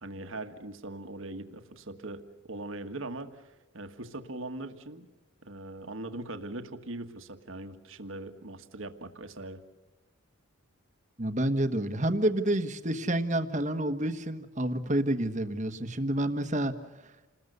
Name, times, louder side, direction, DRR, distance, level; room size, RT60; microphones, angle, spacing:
voice 1, 0.0-3.4 3.7-5.1 5.4-9.6, right 2 dB, 65° right, 7 dB, 1.7 m, -40 dB
voice 2, 11.2-16.7, right 1 dB, 35° right, 9 dB, 1.4 m, -29 dB
28.5 x 20.5 x 6.8 m, 1.1 s
head